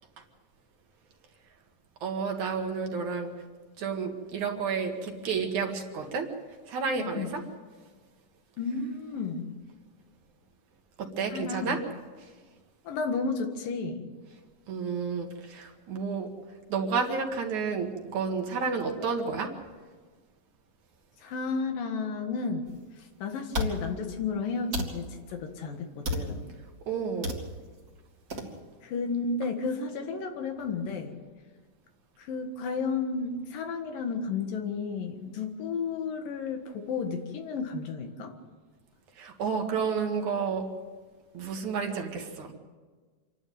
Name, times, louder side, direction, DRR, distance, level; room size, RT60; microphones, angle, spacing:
voice 1, 2.0-3.3 3.8-6.3 6.7-7.4 11.0-11.8 14.7-16.3 16.7-19.5 26.9-27.3 39.2-40.6 41.3-42.5, right 5 dB, 60° right, 3 dB, 3.3 m, -31 dB
voice 2, 7.0-7.3 8.6-9.5 11.3-11.8 12.9-14.1 21.2-22.7 23.2-26.5 28.8-31.2 32.2-38.3, left 4 dB, 90° left, 5 dB, 3.5 m, -32 dB
sound 1, 22.7-22.8 23.5-23.7 24.7-24.9 26.0-26.3 27.2-27.4 28.3-28.5, left 1 dB, 30° right, 2.6 m, -30 dB
27.0 x 12.0 x 9.4 m, 1.4 s
omnidirectional pair, 3.8 m